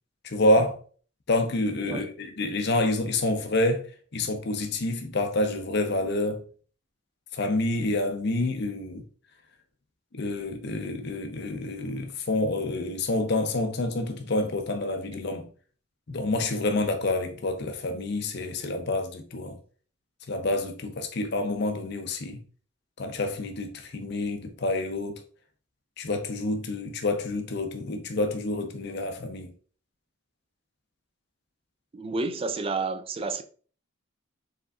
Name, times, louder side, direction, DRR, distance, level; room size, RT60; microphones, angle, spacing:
voice 1, 0.2-0.8 1.3-6.4 7.3-9.0 10.1-15.5 16.1-19.6 20.3-22.4 23.0-25.2 26.0-29.5, left 2 dB, 55° left, 0.6 m, -28 dB
voice 2, 31.9-33.4, right 3 dB, 30° right, 0.3 m, -30 dB
4.8 x 3.7 x 2.4 m
head